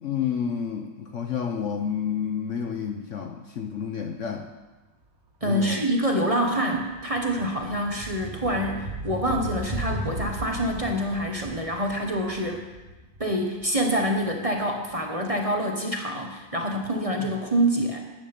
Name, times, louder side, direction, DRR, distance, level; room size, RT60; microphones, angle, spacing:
voice 1, 0.0-4.5 5.4-5.9 17.2-17.3, left 7 dB, 55° left, 5 dB, 1.0 m, -30 dB
voice 2, 5.4-12.6 13.2-18.0, equal, 25° right, 1 dB, 1.1 m, -26 dB
sound 1, 5.4-5.7 6.0-14.9, right 1 dB, 60° right, 2.2 m, -37 dB
13.5 x 9.8 x 5.3 m, 1.2 s
omnidirectional pair, 1.8 m